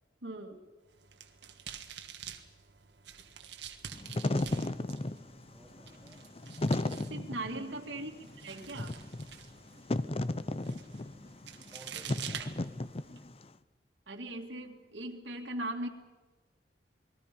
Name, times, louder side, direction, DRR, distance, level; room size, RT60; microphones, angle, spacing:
voice 1, 0.2-0.6 7.1-8.1 8.4-8.9 14.1-15.9, right 1 dB, 85° right, 1 dB, 2.4 m, -39 dB
sound 1, 0.8-13.2, right 8 dB, 70° right, 1.7 m, -48 dB
Wind / Fire, 3.9-13.4, left 2 dB, 35° left, 0.7 m, -35 dB
voice 2, 5.5-6.3 7.9-8.3 11.7-12.8, right 1 dB, 5° right, 1 dB, 4.0 m, -56 dB
29.0 x 20.5 x 5.3 m, 1.2 s
head